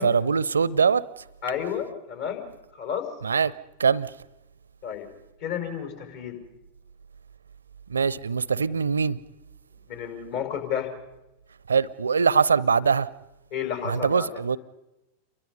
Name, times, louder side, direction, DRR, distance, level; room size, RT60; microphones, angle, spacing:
voice 1, 0.0-1.2 3.2-3.5 3.8-4.1 7.9-9.2 11.7-13.1 13.8-14.6, right 6 dB, 75° right, 0.7 m, -22 dB
voice 2, 1.4-2.4 2.7-3.1 4.8-5.1 5.4-6.4 9.9-10.9 13.5-14.3, left 8 dB, 55° left, 5.6 m, -31 dB
29.5 x 23.5 x 5.5 m
figure-of-eight pair, 90°, 0 cm